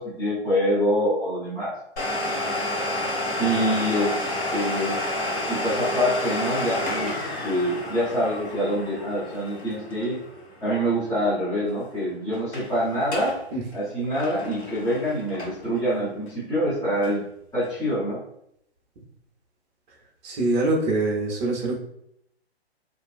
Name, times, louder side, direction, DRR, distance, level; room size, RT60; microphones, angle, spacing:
voice 1, 0.0-1.7 3.4-4.2 4.5-5.0 5.5-10.2 10.6-13.4 13.7-17.2 17.5-18.2, equal, 10° left, -12 dB, 0.7 m, -25 dB
Domestic sounds home sounds, 2.0-11.4 11.6-11.7 12.3-12.7 13.0-13.4 13.7-15.8 16.3-16.4 17.0-17.1, left 1 dB, 80° left, 1.2 m, -30 dB
voice 2, 20.2-21.8, right 2 dB, 40° right, -2 dB, 0.7 m, -24 dB
2.5 x 2.2 x 2.4 m, 0.74 s
hypercardioid pair, 130°, 33 cm